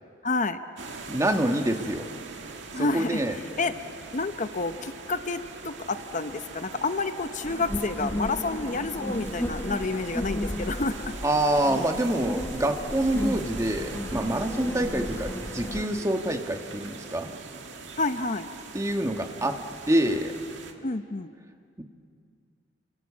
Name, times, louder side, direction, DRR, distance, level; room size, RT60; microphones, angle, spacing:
voice 1, 0.2-0.6 2.7-3.2 3.6-3.7 4.1-11.1 18.0-18.5 20.8-21.3, left 3 dB, 45° left, 9 dB, 0.8 m, -29 dB
sound 1, 0.8-20.7, right 4 dB, 80° right, 2.0 m, -42 dB
voice 2, 1.1-2.1 2.8-3.4 11.2-17.3 18.7-19.6 19.9-20.3 21.8-21.9, right 1 dB, 15° right, 5 dB, 1.5 m, -26 dB
sound 2, 7.4-15.9, equal, 10° left, 1.1 m, -34 dB
30.0 x 25.0 x 7.4 m, 2.2 s
head